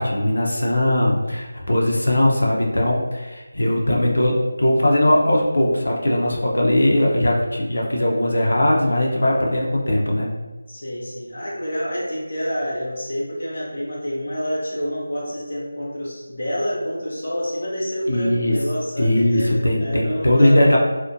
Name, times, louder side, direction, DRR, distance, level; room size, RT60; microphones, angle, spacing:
voice 1, 0.0-10.3 18.1-18.5 19.0-20.8, left 1 dB, 80° left, -2 dB, 0.5 m, -19 dB
voice 2, 1.8-2.3 10.7-20.8, equal, 35° left, -6 dB, 0.5 m, -28 dB
2.4 x 2.1 x 2.5 m, 1.2 s
figure-of-eight pair, 180°, 0 cm